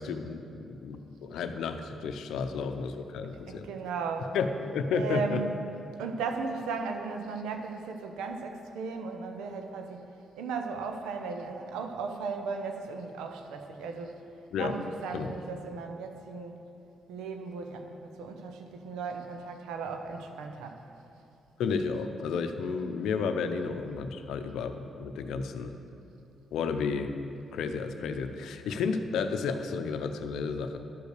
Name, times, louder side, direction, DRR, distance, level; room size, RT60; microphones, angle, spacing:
voice 1, 0.0-3.7 4.3-5.4 14.5-14.7 15.1-15.3 21.6-25.7 26.5-27.1 27.5-30.8, left 5 dB, 80° left, 7 dB, 0.6 m, -32 dB
voice 2, 3.3-4.3 4.9-5.6 6.0-10.0 10.4-14.2 14.6-16.6 17.1-20.9 23.6-23.7, right 4 dB, 85° right, 5 dB, 0.8 m, -36 dB
11.5 x 5.2 x 6.6 m, 2.6 s
supercardioid pair, 50°, 0 cm